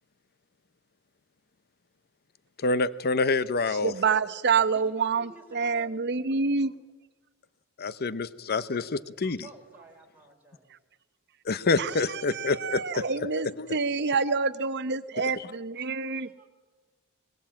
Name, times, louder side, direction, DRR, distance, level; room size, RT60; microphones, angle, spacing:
voice 1, 2.6-3.9 7.8-9.4 11.4-13.7 15.2-15.3, left 3 dB, 45° left, 16 dB, 0.8 m, -27 dB
voice 2, 3.8-6.7 11.8-16.3, right 5 dB, 50° right, 12 dB, 0.9 m, -27 dB
voice 3, 4.7-6.0 9.4-10.7 15.1-15.6 15.9-16.5, right 2 dB, 10° right, -1 dB, 4.8 m, -52 dB
22.5 x 21.0 x 8.8 m, 1.2 s
head